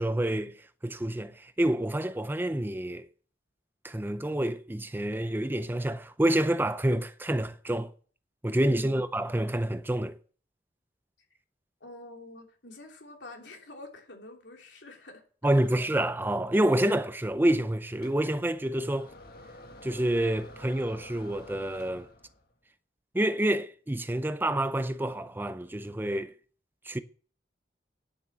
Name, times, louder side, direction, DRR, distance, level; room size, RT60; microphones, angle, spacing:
voice 1, 0.0-3.1 3.8-7.9 8.4-10.2 15.4-19.1 19.8-22.1 23.1-26.3 26.9-27.0, right 1 dB, 10° right, 0.5 m, -28 dB
voice 2, 8.7-9.0 11.8-15.2, left 2 dB, 90° left, 2.9 m, -47 dB
sound 1, 18.0-22.5, left 1 dB, 60° left, 1.7 m, -50 dB
10.5 x 6.4 x 7.3 m
head